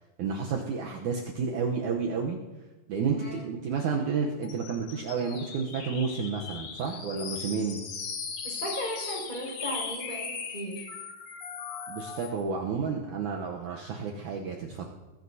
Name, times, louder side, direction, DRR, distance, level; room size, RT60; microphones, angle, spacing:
voice 1, 0.2-2.4 2.9-7.8 11.9-14.8, right 5 dB, 80° right, 0 dB, 1.8 m, -31 dB
voice 2, 3.1-3.5 8.4-10.9, equal, 10° left, -2 dB, 5.3 m, -36 dB
sound 1, 4.4-12.4, left 6 dB, 85° left, 4.1 m, -38 dB
21.0 x 16.5 x 2.8 m, 1.1 s
omnidirectional pair, 4.8 m